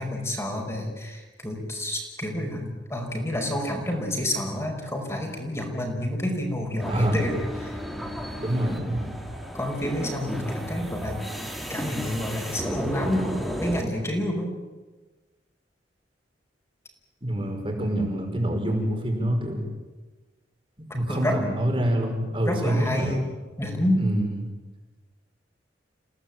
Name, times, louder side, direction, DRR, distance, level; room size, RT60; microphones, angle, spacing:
voice 1, 0.0-8.1 9.5-11.3 11.7-14.5 21.1-21.4 22.5-23.2 23.6-24.0, left 1 dB, 15° left, 1 dB, 5.3 m, -29 dB
sound 1, 6.8-13.8, equal, ahead, 3.6 m, -34 dB
voice 2, 6.9-7.2 8.4-9.2 17.2-19.6 20.9-23.2 24.0-24.4, right 1 dB, 30° right, 2 dB, 5.5 m, -26 dB
29.0 x 18.0 x 9.0 m, 1.2 s
head